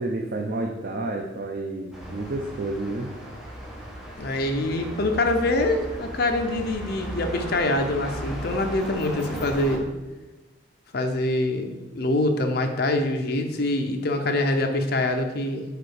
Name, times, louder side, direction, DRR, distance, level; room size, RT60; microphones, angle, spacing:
voice 1, 0.0-3.1, right 2 dB, 50° right, 1 dB, 0.5 m, -30 dB
sound 1, 1.9-9.8, equal, ahead, 1.0 m, -36 dB
voice 2, 4.2-9.9 10.9-15.6, left 2 dB, 55° left, 5 dB, 0.7 m, -25 dB
5.0 x 4.3 x 4.8 m, 1.1 s
head